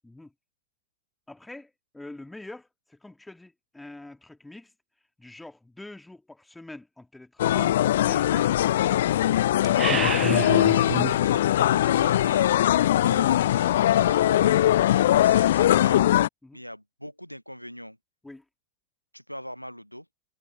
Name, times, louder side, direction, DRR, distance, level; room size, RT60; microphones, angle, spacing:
voice 1, 0.0-0.3 1.3-4.7 5.2-9.1 16.4-16.6 18.2-18.4, left 2 dB, 5° left, 2.3 m, -45 dB
sound 1, 7.4-16.3, left 12 dB, 60° left, 0.3 m, -21 dB
sound 2, 9.6-11.2, right 7 dB, 20° right, 0.4 m, -29 dB
voice 2, 9.8-12.5 13.0-14.6 15.2-16.0 16.5-18.0 19.1-20.1, equal, 90° left, 1.1 m, -40 dB
figure-of-eight pair, 90°, 0 cm